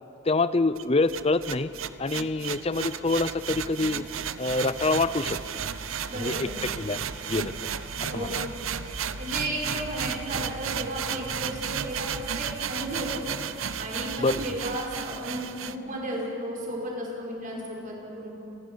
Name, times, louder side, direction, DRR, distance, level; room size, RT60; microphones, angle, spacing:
voice 1, 0.2-1.7 2.0-4.0 4.4-5.4 6.1-6.5 6.8-7.7 8.0-8.4 14.2-14.4, left 3 dB, 30° left, 15 dB, 0.6 m, -26 dB
sound 1, 0.8-15.8, right 7 dB, 75° right, 0.8 m, -33 dB
voice 2, 6.1-6.6 8.1-8.5 9.2-12.1 12.3-13.3 13.8-18.3, right 1 dB, 40° right, -3 dB, 5.8 m, -34 dB
29.5 x 20.5 x 6.4 m, 2.9 s
head